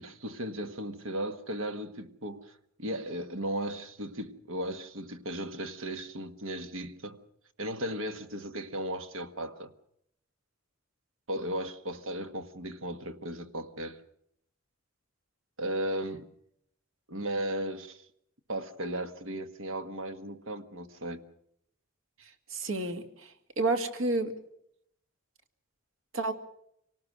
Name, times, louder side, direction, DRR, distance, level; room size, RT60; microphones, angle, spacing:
voice 1, 0.0-7.2 7.6-9.7 11.3-14.0 15.6-16.3 17.1-18.0 18.5-21.2, right 1 dB, 75° right, 1.6 m, -36 dB
voice 2, 22.5-23.3 23.6-24.3 26.1-26.3, right 2 dB, 90° right, 2.2 m, -30 dB
26.0 x 18.5 x 6.2 m
head